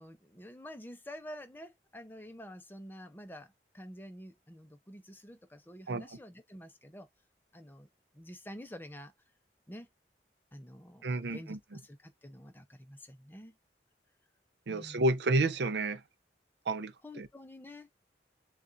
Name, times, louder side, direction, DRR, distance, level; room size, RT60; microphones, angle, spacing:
voice 1, 0.0-7.1 7.5-7.9 8.1-9.1 9.7-9.9 10.5-13.6 14.7-15.1 17.0-17.9, equal, 10° left, 0.6 m, -48 dB
voice 2, 11.0-11.6 14.7-16.0 16.7-17.3, right 2 dB, 75° right, 0.5 m, -30 dB
6.8 x 2.4 x 2.6 m
head